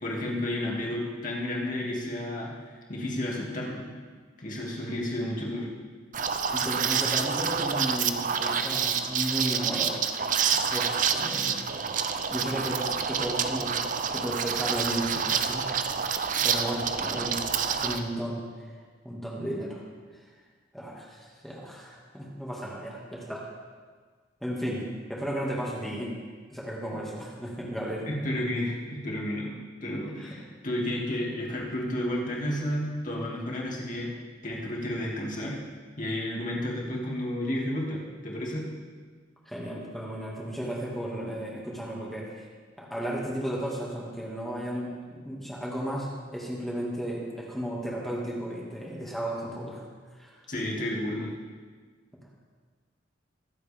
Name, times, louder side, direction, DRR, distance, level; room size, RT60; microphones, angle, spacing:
voice 1, 0.0-3.8 4.4-5.7 28.1-29.5 29.8-34.1 34.4-35.6 36.0-38.7 50.5-51.3, left 1 dB, 40° left, -3 dB, 2.5 m, -31 dB
Liquid, 6.1-18.0, right 6 dB, 40° right, 0.6 m, -28 dB
voice 2, 6.5-10.0 10.6-11.6 12.3-12.8 13.1-13.7 14.1-16.1 16.4-18.5 19.0-19.8 20.2-20.3 20.7-23.4 24.4-24.8 25.1-26.1 26.5-28.0 30.2-30.3 39.5-42.5 42.8-49.8 50.1-50.4, right 1 dB, ahead, -5 dB, 2.1 m, -34 dB
23.5 x 7.9 x 3.6 m, 1.5 s
head